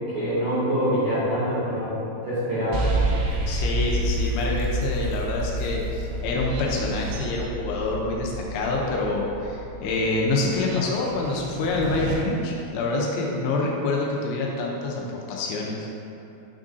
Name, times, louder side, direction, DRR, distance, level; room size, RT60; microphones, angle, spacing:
voice 1, 0.1-2.0 2.2-2.9, equal, 65° right, -12 dB, 1.9 m, -25 dB
sound 1, 2.7-12.2, right 1 dB, 85° right, 3.2 m, -29 dB
voice 2, 3.5-15.0 15.3-15.8, left 2 dB, 90° left, -3 dB, 3.1 m, -26 dB
9.9 x 3.6 x 2.6 m, 2.8 s
omnidirectional pair, 5.3 m